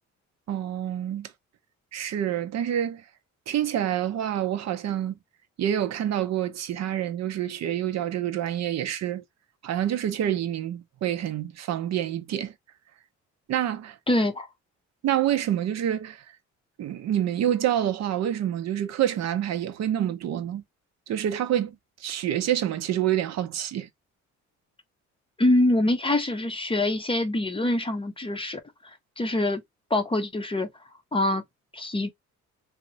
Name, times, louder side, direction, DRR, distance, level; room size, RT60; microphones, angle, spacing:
voice 1, 0.5-1.3 1.9-3.0 3.5-5.2 5.6-9.2 9.6-12.5 13.5-14.0 15.0-16.2 16.8-20.6 21.1-23.9, right 11 dB, 60° right, 0.6 m, -27 dB
voice 2, 14.1-14.5 25.4-28.6 29.2-29.6 29.9-30.7 31.1-31.4 31.7-32.1, left 1 dB, 20° left, 0.5 m, -24 dB
2.8 x 2.1 x 2.5 m
cardioid pair, 90°, 30 cm